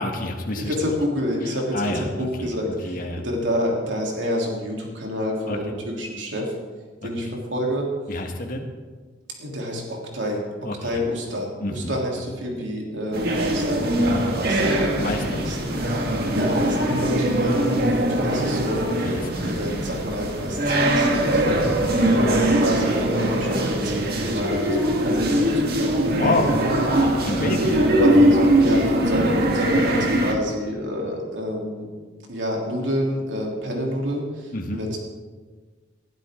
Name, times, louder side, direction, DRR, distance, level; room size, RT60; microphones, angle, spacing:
voice 1, 0.0-0.7 1.7-2.5 2.8-3.2 5.5-5.6 7.0-7.1 8.1-8.7 10.6-10.8 11.6-11.9 14.0-14.3 15.0-15.8 16.1-16.4 19.0-19.5 21.4-22.1 26.2-26.5 26.9-27.9 34.5-34.8, left 2 dB, 50° left, 2 dB, 1.5 m, -28 dB
voice 2, 0.5-6.5 7.0-7.9 9.4-13.8 14.3-15.1 15.4-15.9 16.3-26.5 27.8-31.9 32.3-35.0, equal, 85° right, -1 dB, 3.4 m, -29 dB
sound 1, 13.1-30.3, right 1 dB, 55° right, 1.9 m, -21 dB
20.0 x 12.0 x 3.8 m, 1.4 s
head